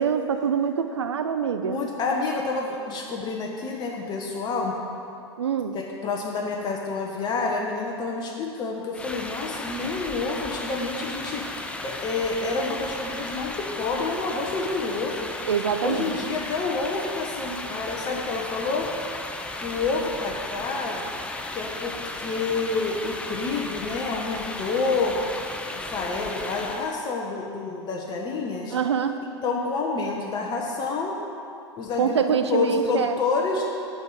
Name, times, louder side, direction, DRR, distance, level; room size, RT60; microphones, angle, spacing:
voice 1, 0.0-1.8 5.4-5.8 15.5-16.1 28.7-29.2 32.0-33.1, right 7 dB, 75° right, 8 dB, 0.5 m, -25 dB
voice 2, 1.6-4.8 5.7-11.5 11.8-15.3 15.8-18.9 19.6-21.1 21.5-25.2 25.7-28.8 29.4-31.2 31.8-32.2 32.5-33.7, left 3 dB, 30° left, 0 dB, 1.1 m, -28 dB
sound 1, 8.9-27.0, left 2 dB, 10° left, 0.6 m, -35 dB
9.4 x 5.6 x 6.4 m, 2.5 s
figure-of-eight pair, 90°, 15 cm